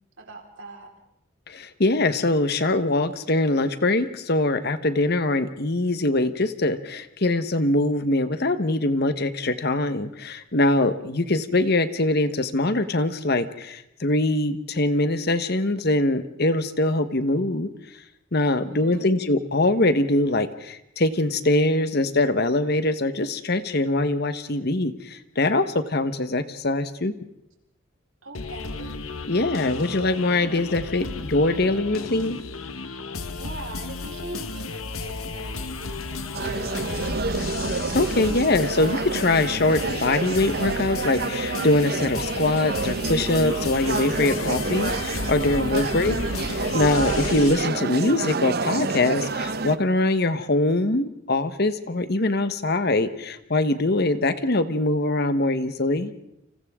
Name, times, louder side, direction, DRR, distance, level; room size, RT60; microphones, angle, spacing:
voice 1, 0.2-0.9 18.4-19.1 28.2-28.9 33.4-37.3, right 2 dB, 70° right, 1 dB, 4.5 m, -42 dB
voice 2, 1.5-17.7 18.3-27.1 29.3-32.4 37.9-46.1 46.7-56.1, left 2 dB, 50° left, 11 dB, 1.2 m, -23 dB
sound 1, 28.3-47.6, left 3 dB, 90° left, 1.4 m, -33 dB
sound 2, 36.3-49.8, right 3 dB, 50° right, 0.8 m, -29 dB
30.0 x 26.5 x 3.7 m, 0.82 s
head